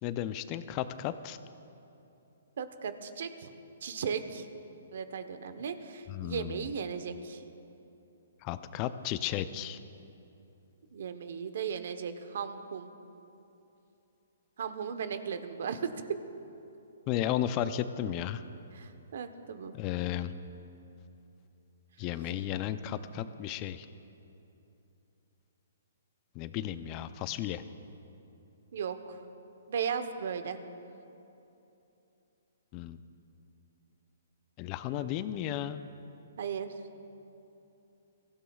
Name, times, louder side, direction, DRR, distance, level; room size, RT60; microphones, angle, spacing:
voice 1, 0.0-1.4 6.1-6.7 8.4-9.8 17.1-18.4 19.8-20.3 22.0-23.9 26.4-27.6 32.7-33.0 34.6-35.8, left 11 dB, 30° left, 12 dB, 0.5 m, -34 dB
voice 2, 2.6-3.5 3.8-4.5 4.9-7.4 10.9-12.9 14.6-16.2 18.7-19.7 28.7-29.2 29.7-30.6 36.4-36.7, right 7 dB, 65° right, 9 dB, 1.0 m, -36 dB
22.5 x 15.5 x 2.4 m, 2.9 s
hypercardioid pair, 140°, 0 cm